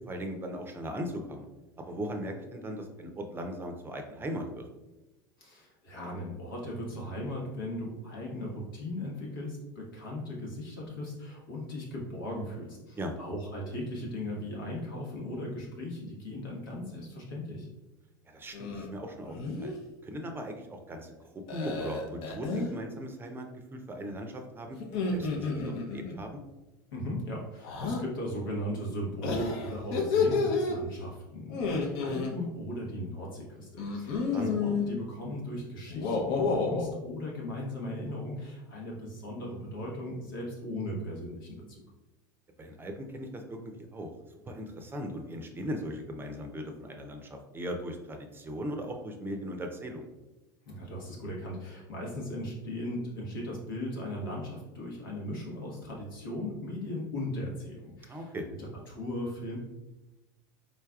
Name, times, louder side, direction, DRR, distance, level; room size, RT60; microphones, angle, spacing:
voice 1, 0.1-1.5 1.9-4.6 13.0-13.1 18.3-19.7 20.0-21.1 21.5-23.5 23.7-24.8 25.1-26.4 34.3-34.5 42.6-44.1 44.5-50.1 58.1-58.5, equal, 20° right, 4 dB, 0.5 m, -38 dB
voice 2, 5.4-17.7 26.9-41.8 50.6-59.6, left 1 dB, 90° left, -3 dB, 1.1 m, -37 dB
sound 1, 18.5-18.9 19.2-19.8 21.5-22.7 24.8-26.2 27.6-28.0 29.2-30.8 31.5-32.3 33.8-34.9 35.9-36.9, left 4 dB, 60° left, 0.7 m, -30 dB
3.9 x 3.3 x 2.3 m, 1.0 s
hypercardioid pair, 95°, 11 cm